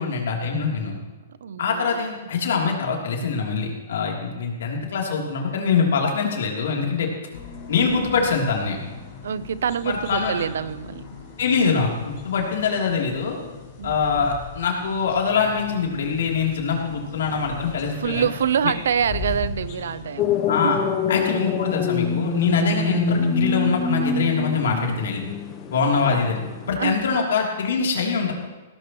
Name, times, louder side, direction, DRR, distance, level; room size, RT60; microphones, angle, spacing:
voice 1, 0.0-1.0 1.6-7.1 7.7-8.8 9.8-10.3 11.4-13.4 13.8-18.3 20.5-20.8 21.1-25.2 25.7-26.4 26.7-28.3, left 5 dB, 75° left, 0 dB, 3.1 m, -23 dB
voice 2, 0.9-2.1 9.2-11.1 13.8-14.3 18.0-20.9 26.8-27.0, right 8 dB, 80° right, 16 dB, 0.6 m, -26 dB
sound 1, 7.3-20.3, left 5 dB, 50° left, 5.1 m, -39 dB
sound 2, 20.2-26.7, left 4 dB, 25° left, 1.0 m, -25 dB
17.0 x 14.5 x 3.1 m, 1.2 s
hypercardioid pair, 145°, 0 cm